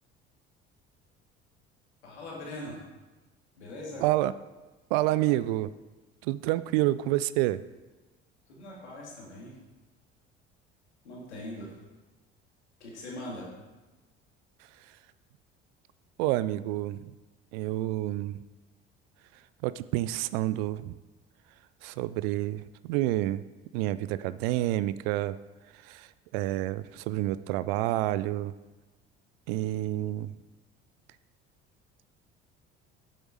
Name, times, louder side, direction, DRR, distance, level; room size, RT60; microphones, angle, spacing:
voice 1, 2.0-2.8 3.6-4.0 8.5-9.6 11.0-11.8 12.8-13.5, left 1 dB, 80° left, -3 dB, 2.5 m, -41 dB
voice 2, 4.0-4.3 4.9-5.7 6.2-7.6 16.2-17.2 17.5-18.4 19.6-21.0 21.8-23.4 23.7-25.4 25.7-28.5 29.5-30.3, right 15 dB, 60° right, 16 dB, 0.5 m, -29 dB
8.1 x 8.0 x 4.8 m, 1.2 s
figure-of-eight pair, 55°, 33 cm